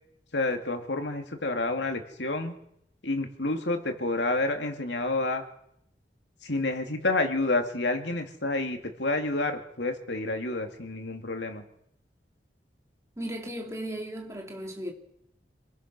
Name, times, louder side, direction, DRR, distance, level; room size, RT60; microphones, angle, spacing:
voice 1, 0.3-2.6 3.0-5.4 6.4-11.6, left 2 dB, 85° left, 2.7 m, -29 dB
voice 2, 13.2-14.9, right 1 dB, 15° right, 3.0 m, -36 dB
26.5 x 21.0 x 6.2 m
head